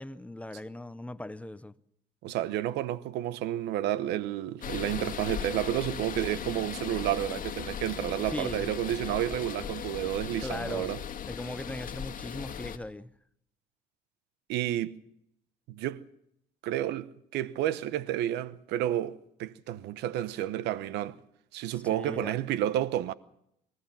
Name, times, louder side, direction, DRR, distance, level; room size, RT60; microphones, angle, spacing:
voice 1, 0.0-1.7 8.2-8.7 10.4-11.0 11.3-13.1 21.9-22.3, left 1 dB, 10° left, 0.7 m, -39 dB
voice 2, 2.2-11.0 14.5-15.0 15.7-16.0 16.6-21.2 21.5-23.1, right 12 dB, 85° right, 0.9 m, -31 dB
sound 1, 4.6-12.8, left 8 dB, 50° left, 1.7 m, -38 dB
25.5 x 14.5 x 7.3 m
cardioid pair, 110°, 17 cm